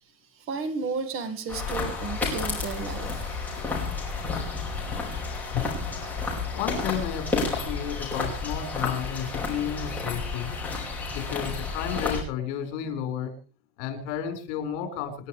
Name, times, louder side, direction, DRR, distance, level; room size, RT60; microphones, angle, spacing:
voice 1, 0.3-4.1, right 4 dB, 40° right, 10 dB, 1.8 m, -34 dB
sound 1, 1.5-12.2, left 4 dB, 5° left, 4.9 m, -31 dB
voice 2, 6.5-10.5 11.1-13.3 13.8-15.3, left 9 dB, 70° left, 7 dB, 4.9 m, -32 dB
27.0 x 11.0 x 3.3 m, 0.36 s
cardioid pair, 175°, 34 cm